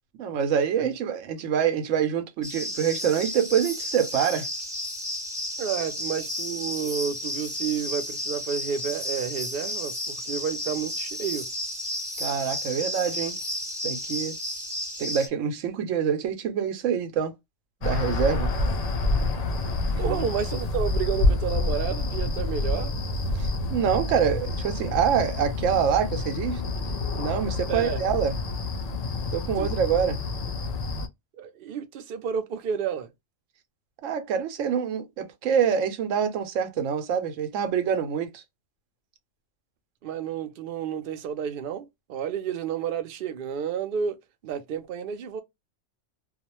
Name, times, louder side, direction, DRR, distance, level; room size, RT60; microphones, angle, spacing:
voice 1, 0.2-4.5 12.2-13.4 13.8-14.3 15.0-17.3 17.8-18.5 20.0-20.2 23.3-26.7 27.1-28.4 29.3-30.2 34.0-38.4, right 7 dB, 90° right, 1.0 m, -26 dB
sound 1, 2.4-15.3, left 1 dB, 5° right, 0.4 m, -33 dB
voice 2, 5.6-11.5 20.0-22.9 27.7-28.0 29.6-29.7 31.4-33.1 40.0-44.2 44.4-45.4, right 8 dB, 60° right, 0.6 m, -31 dB
sound 2, 17.8-31.1, left 2 dB, 85° left, 0.3 m, -28 dB
2.3 x 2.1 x 2.9 m
omnidirectional pair, 1.3 m